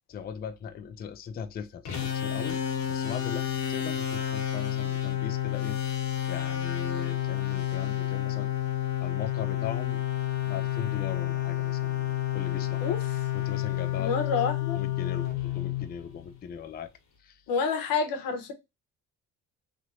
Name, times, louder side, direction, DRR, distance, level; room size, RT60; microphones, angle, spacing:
voice 1, 0.1-2.6 2.9-5.8 6.3-8.6 9.0-10.0 10.4-13.0 13.3-14.1 14.7-16.9 17.2-17.4, left 7 dB, 30° left, 0.4 m, -39 dB
sound 1, 1.8-16.4, left 12 dB, 55° left, 1.2 m, -30 dB
voice 2, 14.0-14.8 17.5-18.5, left 5 dB, 85° left, 0.9 m, -28 dB
3.0 x 2.6 x 2.9 m
cardioid pair, 95°, 33 cm